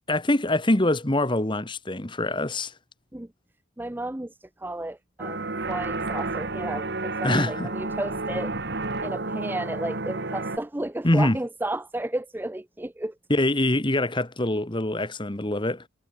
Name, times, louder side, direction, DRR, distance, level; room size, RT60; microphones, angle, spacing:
voice 1, 0.1-2.7 7.2-7.7 11.0-11.4 13.3-15.8, left 1 dB, 25° left, 1.3 m, -24 dB
voice 2, 3.8-8.6 9.0-13.2, right 1 dB, 10° right, 0.5 m, -33 dB
sound 1, 5.2-10.6, right 3 dB, 55° right, 1.8 m, -31 dB
head